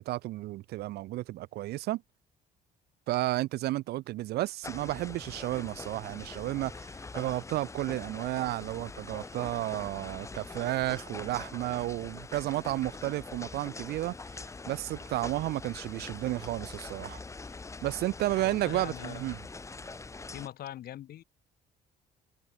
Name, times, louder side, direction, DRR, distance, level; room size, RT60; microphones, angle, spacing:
voice 1, 0.0-2.0 3.1-14.2 14.7-17.2 17.8-19.4, right 17 dB, 70° right, 0.6 m, -32 dB
sound 1, 4.6-20.5, left 3 dB, 15° left, 1.2 m, -43 dB
voice 2, 18.4-19.4 20.3-21.2, left 12 dB, 65° left, 4.7 m, -42 dB
cardioid pair, 110°, 17 cm